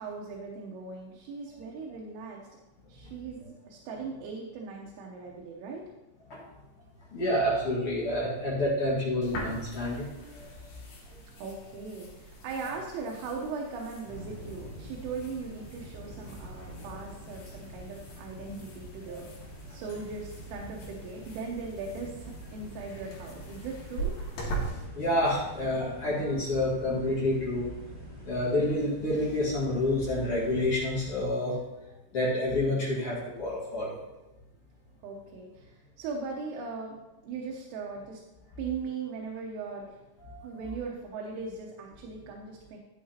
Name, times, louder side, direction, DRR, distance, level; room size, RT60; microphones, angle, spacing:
voice 1, 0.0-2.5 2.9-5.9 11.4-19.3 19.7-24.2 35.0-37.0 37.2-38.2 38.6-40.0 40.4-42.8, right 4 dB, 80° right, -1 dB, 3.4 m, -39 dB
voice 2, 7.1-10.5 19.1-19.2 24.9-27.7 28.2-31.6 32.1-34.0 40.2-40.5, left 1 dB, 90° left, -7 dB, 1.2 m, -28 dB
sound 1, 9.2-24.7, right 2 dB, 65° left, 4.0 m, -42 dB
sound 2, 14.0-31.2, equal, 50° right, 0.6 m, -46 dB
11.0 x 8.6 x 2.9 m, 1.0 s
omnidirectional pair, 5.9 m